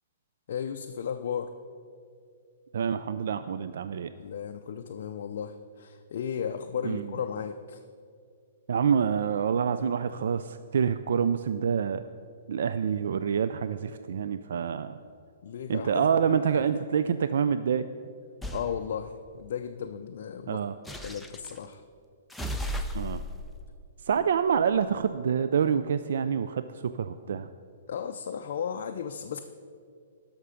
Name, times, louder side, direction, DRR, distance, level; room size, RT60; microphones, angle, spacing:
voice 1, 0.5-1.5 4.2-7.8 15.4-16.6 18.5-20.6 21.0-21.8 27.9-29.4, left 7 dB, 60° left, 6 dB, 0.4 m, -35 dB
voice 2, 2.7-4.1 6.8-7.1 8.7-12.0 12.5-15.0 15.7-17.9 20.5-20.7 22.9-23.2 24.0-27.5, right 7 dB, 70° right, 11 dB, 0.3 m, -27 dB
sound 1, 18.4-18.7 20.8-21.6 22.3-24.9, equal, ahead, 0.5 m, -36 dB
12.5 x 6.0 x 5.0 m, 2.3 s
hypercardioid pair, 155°, 0 cm